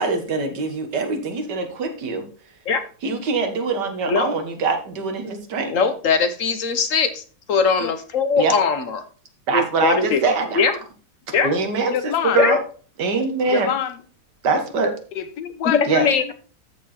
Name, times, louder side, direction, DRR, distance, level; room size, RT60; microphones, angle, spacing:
voice 1, 0.0-2.3 3.0-5.7 8.4-8.5 9.5-10.6 11.3-12.6 13.0-13.7 14.4-14.9 15.9-16.1, right 4 dB, 90° right, 2.0 m, -23 dB
voice 2, 5.7-7.2 7.5-9.0 9.5-10.7 11.3-11.5 12.4-12.6 15.6-16.3, left 5 dB, 55° left, 1.2 m, -20 dB
voice 3, 11.9-12.4 13.5-13.9 15.1-16.3, left 9 dB, 80° left, 1.4 m, -26 dB
13.5 x 4.6 x 4.2 m
omnidirectional pair, 1.8 m